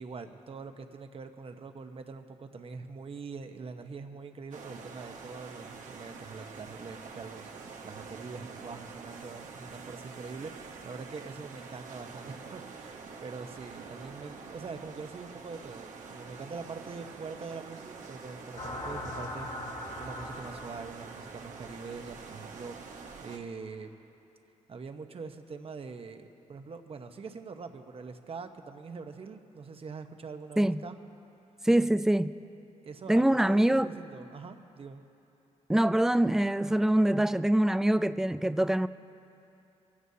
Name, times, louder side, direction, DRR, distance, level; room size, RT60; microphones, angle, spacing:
voice 1, 0.0-23.9 24.7-31.0 32.8-35.0, right 4 dB, 50° right, 1.0 m, -44 dB
sound 1, 4.5-23.4, right 5 dB, 85° right, 1.2 m, -46 dB
sound 2, 18.6-20.9, left 1 dB, 80° left, 2.4 m, -39 dB
voice 2, 31.6-32.3 33.1-33.9 35.7-38.9, right 1 dB, 5° right, 0.3 m, -24 dB
23.5 x 16.0 x 2.8 m
cardioid pair, 90°, 13 cm